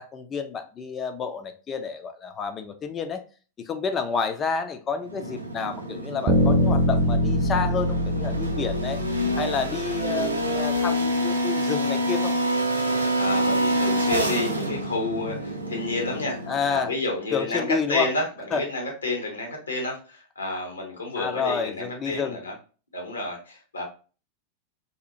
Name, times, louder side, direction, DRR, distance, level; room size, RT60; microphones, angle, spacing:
voice 1, 0.0-3.2 3.6-9.0 9.4-12.3 16.5-16.9 17.3-18.1 18.5-18.6 21.2-22.4, left 6 dB, 25° left, 7 dB, 0.4 m, -29 dB
sound 1, 5.0-16.9, equal, 85° right, 0.4 m, -27 dB
sound 2, 6.3-10.2, equal, 35° right, 0.8 m, -24 dB
voice 2, 13.1-16.4 16.7-18.2 18.5-22.5 22.9-23.8, left 2 dB, 75° left, 0 dB, 0.9 m, -30 dB
2.8 x 2.3 x 2.6 m, 0.36 s
figure-of-eight pair, 90°, 0 cm